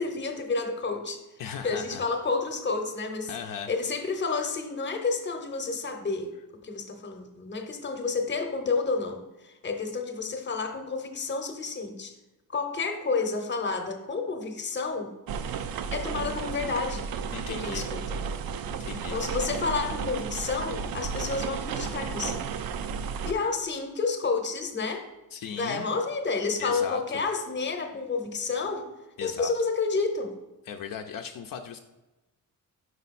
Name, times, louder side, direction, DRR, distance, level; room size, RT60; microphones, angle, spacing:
voice 1, 0.0-1.2 1.6-3.3 3.7-6.3 6.6-12.1 12.5-15.1 15.9-17.1 17.5-18.2 19.1-22.4 23.2-25.1 25.5-28.9 29.2-30.3, left 4 dB, 30° left, 6 dB, 0.8 m, -30 dB
voice 2, 1.4-2.0 3.3-3.7 17.3-17.9 18.8-19.2 25.3-25.9 26.6-27.2 29.2-29.5 30.6-31.8, left 7 dB, 70° left, 5 dB, 0.5 m, -37 dB
sound 1, 15.3-23.3, right 6 dB, 80° right, 0.5 m, -33 dB
5.4 x 4.8 x 4.1 m, 1.1 s
wide cardioid pair, 120°, 35 cm